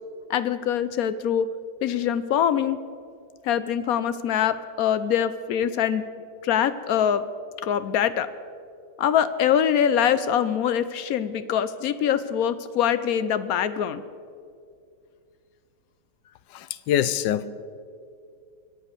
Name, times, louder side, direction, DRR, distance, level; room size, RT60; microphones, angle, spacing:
voice 1, 0.3-1.5 1.8-2.8 3.4-6.0 6.4-7.2 7.6-8.3 9.0-14.0, left 9 dB, 65° left, 14 dB, 0.9 m, -23 dB
voice 2, 16.5-17.5, left 10 dB, 85° left, 15 dB, 1.3 m, -24 dB
23.5 x 8.2 x 6.7 m, 2.3 s
omnidirectional pair, 1.9 m